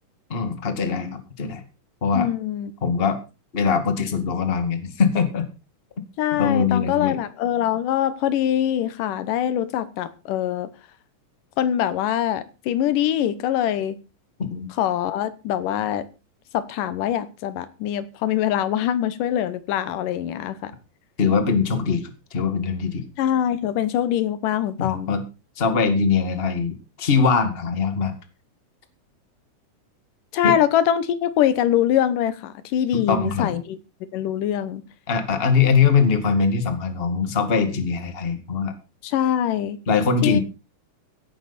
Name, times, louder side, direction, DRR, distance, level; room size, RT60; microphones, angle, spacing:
voice 1, 0.3-1.6 2.0-2.3 2.8-3.2 3.5-5.4 6.3-7.2 14.5-14.7 21.2-23.1 24.8-25.2 25.6-28.1 30.4-30.5 32.9-33.6 35.1-38.7 39.9-40.4, left 5 dB, 20° left, 8 dB, 1.7 m, -22 dB
voice 2, 2.1-2.7 6.2-10.7 11.6-14.0 14.8-16.1 16.5-20.7 23.2-25.1 30.3-33.8 34.1-34.8 39.0-39.8 40.2-40.4, left 11 dB, 85° left, 14 dB, 2.7 m, -23 dB
16.0 x 11.0 x 4.2 m, 0.30 s
omnidirectional pair, 3.7 m